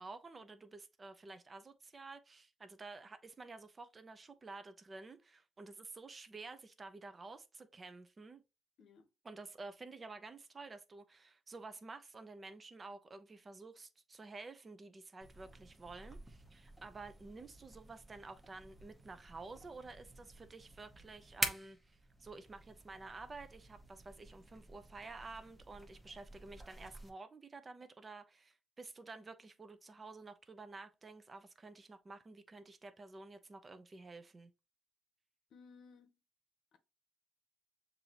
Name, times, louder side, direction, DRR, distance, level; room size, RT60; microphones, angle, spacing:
voice 1, 0.0-8.4 9.2-34.5, right 3 dB, 30° right, 0.6 m, -51 dB
voice 2, 8.8-9.1 35.5-36.2 36.7-36.8, left 5 dB, 70° left, 0.8 m, -59 dB
sound 1, 15.2-27.1, right 1 dB, 10° right, 1.0 m, -48 dB
6.6 x 2.7 x 2.9 m
cardioid pair, 90°, 0 cm